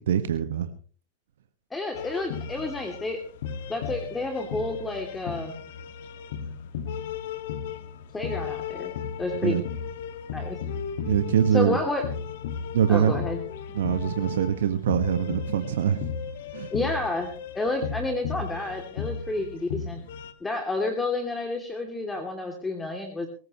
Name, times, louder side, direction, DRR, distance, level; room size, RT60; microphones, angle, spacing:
voice 1, 0.1-0.7 9.4-9.6 11.0-11.8 12.7-13.1 13.7-16.1 16.5-16.7, right 9 dB, 70° right, 8 dB, 1.6 m, -23 dB
voice 2, 1.7-3.2 3.7-5.6 8.1-9.6 10.3-10.6 11.5-12.0 12.9-13.4 16.7-20.0 20.4-23.3, left 2 dB, 15° left, 4 dB, 2.9 m, -30 dB
sound 1, 1.9-20.3, left 7 dB, 65° left, 2.0 m, -35 dB
23.5 x 15.0 x 3.2 m, 0.40 s
hypercardioid pair, 100°, 0 cm